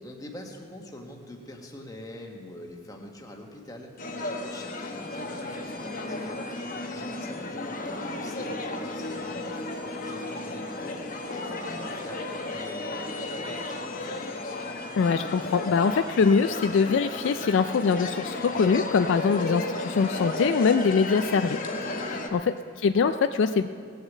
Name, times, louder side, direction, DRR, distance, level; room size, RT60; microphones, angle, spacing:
voice 1, 0.0-6.4 6.9-14.4 21.9-22.3, left 1 dB, 15° left, 1 dB, 1.2 m, -44 dB
sound 1, 4.0-22.3, left 2 dB, 40° left, 0.9 m, -34 dB
voice 2, 15.0-21.6 21.8-22.4 22.8-23.7, left 5 dB, 60° left, 10 dB, 0.3 m, -23 dB
18.0 x 6.4 x 7.3 m, 2.2 s
head